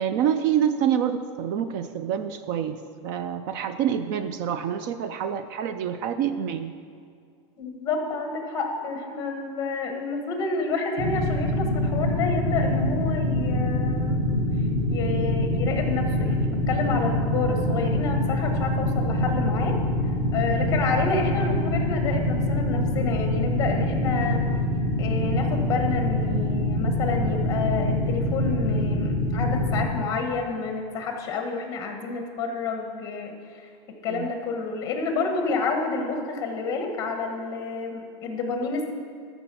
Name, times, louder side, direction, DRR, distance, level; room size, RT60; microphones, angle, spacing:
voice 1, 0.0-6.7 34.1-34.3, right 9 dB, 40° right, 10 dB, 0.4 m, -27 dB
voice 2, 7.6-14.2 14.9-19.8 20.3-24.4 25.0-33.7 34.0-38.9, left 4 dB, 25° left, 4 dB, 1.4 m, -29 dB
sound 1, 11.0-29.9, left 1 dB, 15° right, 2.0 m, -25 dB
12.5 x 6.0 x 6.9 m, 2.3 s
supercardioid pair, 165°, 15 cm